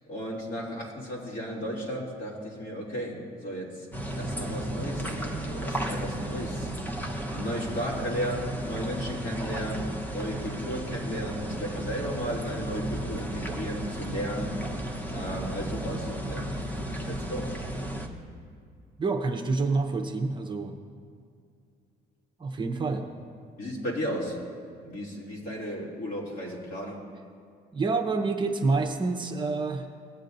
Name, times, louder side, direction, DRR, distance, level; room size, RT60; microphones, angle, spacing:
voice 1, 0.1-3.9 4.1-6.7 7.3-14.6 15.1-16.5 17.0-17.6 23.6-24.4 24.8-27.0, equal, 55° left, -4 dB, 2.9 m, -34 dB
sound 1, 3.9-18.1, right 1 dB, 10° left, 1.1 m, -34 dB
voice 2, 19.0-20.8 22.4-23.1 27.7-29.9, right 3 dB, 30° right, 3 dB, 0.9 m, -27 dB
19.5 x 8.3 x 2.7 m, 2.2 s
cardioid pair, 110°, 17 cm